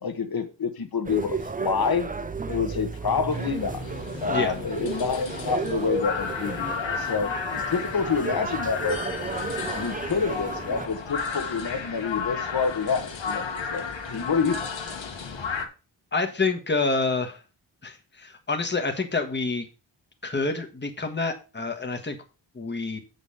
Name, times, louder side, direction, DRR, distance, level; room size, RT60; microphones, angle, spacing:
voice 1, 0.0-2.1 2.5-3.8 4.2-9.0 9.4-14.7, left 5 dB, 55° left, 1.4 m, -28 dB
sound 1, 1.0-10.9, right 4 dB, 20° right, 0.5 m, -33 dB
sound 2, 3.3-15.7, left 5 dB, 85° left, 1.7 m, -33 dB
voice 2, 4.2-4.5 16.1-17.4 17.8-19.7 20.2-22.2 22.5-23.0, left 3 dB, 25° left, 1.3 m, -27 dB
8.1 x 5.4 x 5.5 m
wide cardioid pair, 165°, 44 cm